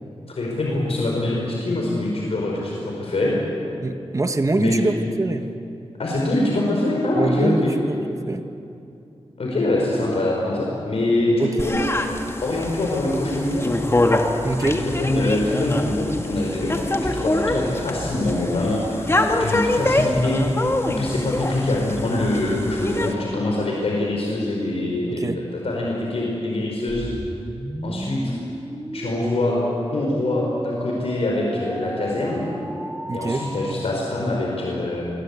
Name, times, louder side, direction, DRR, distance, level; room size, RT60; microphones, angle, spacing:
voice 1, 0.4-3.4 4.6-4.9 6.0-7.7 9.4-11.9 12.4-13.8 14.6-20.4 20.8-25.2 25.5-27.1 27.8-28.3 28.9-29.6 29.9-32.4 33.1-35.0, left 1 dB, 70° left, -2 dB, 4.7 m, -24 dB
voice 2, 3.8-5.5 7.2-8.4 11.4-11.7 14.4-14.8 25.0-25.4 33.1-33.5, right 2 dB, 30° right, 8 dB, 1.3 m, -24 dB
sound 1, 11.6-23.1, left 2 dB, 25° left, 2.0 m, -25 dB
sound 2, 26.9-33.7, right 1 dB, 10° right, 1.5 m, -33 dB
26.5 x 22.0 x 8.3 m, 2.7 s
wide cardioid pair, 105°, 11 cm